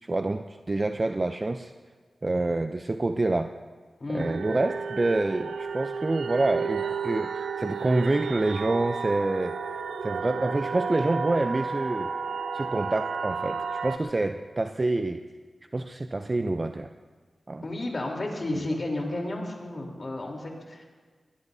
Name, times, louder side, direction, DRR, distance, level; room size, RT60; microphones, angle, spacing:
voice 1, 0.0-1.7 2.2-3.5 4.1-9.6 10.0-12.1 12.5-15.2 15.7-16.9 17.5-17.6 18.5-18.7, right 2 dB, 40° right, 7 dB, 0.6 m, -27 dB
sound 1, 4.2-14.0, right 5 dB, 90° right, 0.7 m, -32 dB
voice 2, 17.6-20.8, left 2 dB, 50° left, 0 dB, 3.6 m, -32 dB
21.5 x 20.0 x 2.8 m, 1.5 s
cardioid pair, 45°, 0 cm